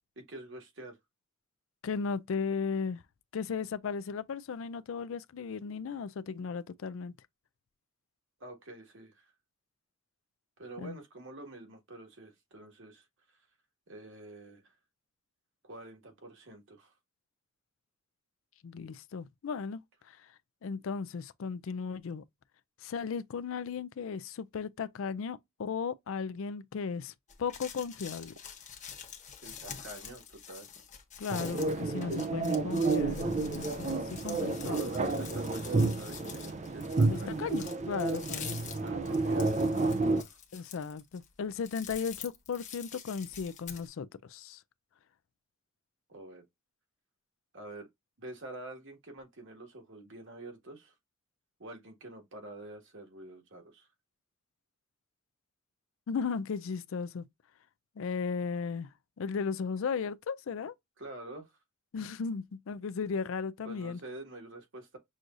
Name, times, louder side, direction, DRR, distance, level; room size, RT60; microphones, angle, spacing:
voice 1, 0.2-1.0 8.4-9.3 10.6-13.4 13.9-14.7 15.6-16.9 29.4-30.7 34.7-37.7 38.8-40.4 46.1-46.4 47.5-47.9 48.2-50.9 51.6-53.9 61.0-61.6 63.6-65.0, right 2 dB, 60° right, 1.6 m, -47 dB
voice 2, 1.8-3.0 3.3-7.1 10.8-11.0 18.6-19.8 20.1-20.2 20.6-22.2 22.8-27.1 27.4-28.3 31.2-34.8 37.1-38.6 40.5-44.6 56.1-57.2 58.0-58.9 59.2-60.7 61.9-64.0, left 5 dB, 65° left, 0.4 m, -36 dB
sound 1, 27.3-43.9, left 7 dB, 35° left, 1.0 m, -46 dB
sound 2, 31.3-40.2, right 3 dB, 35° right, 0.5 m, -30 dB
6.2 x 2.6 x 2.4 m
head